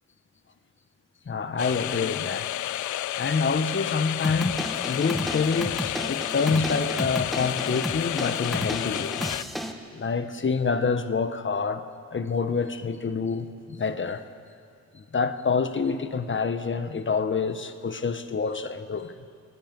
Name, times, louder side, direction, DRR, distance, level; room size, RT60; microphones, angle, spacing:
voice 1, 1.3-2.5 3.1-9.3 9.9-14.2 14.9-19.1, left 5 dB, 40° left, 1.3 m, -27 dB
sound 1, 1.6-9.4, left 14 dB, 80° left, 0.4 m, -31 dB
sound 2, 4.2-9.7, equal, ahead, 1.7 m, -33 dB
26.5 x 19.5 x 5.5 m
cardioid pair, 75°, 29 cm